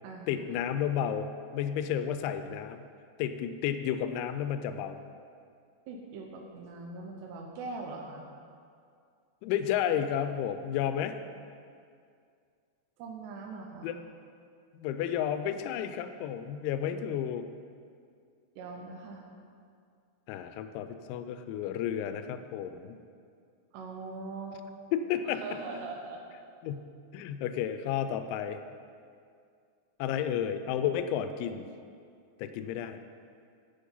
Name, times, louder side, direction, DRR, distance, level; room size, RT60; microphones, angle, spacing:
voice 1, 0.3-2.8 3.2-5.0 9.4-11.2 13.8-14.0 14.7-17.5 20.3-23.0 24.9-25.4 26.6-26.9 27.1-28.6 30.0-31.7 32.4-33.0, left 9 dB, 85° left, 10 dB, 2.8 m, -32 dB
voice 2, 5.9-8.3 13.0-13.9 18.6-19.2 23.7-24.7 25.3-26.2, right 3 dB, 75° right, 0 dB, 2.7 m, -41 dB
10.0 x 8.2 x 5.5 m, 2.3 s
omnidirectional pair, 5.5 m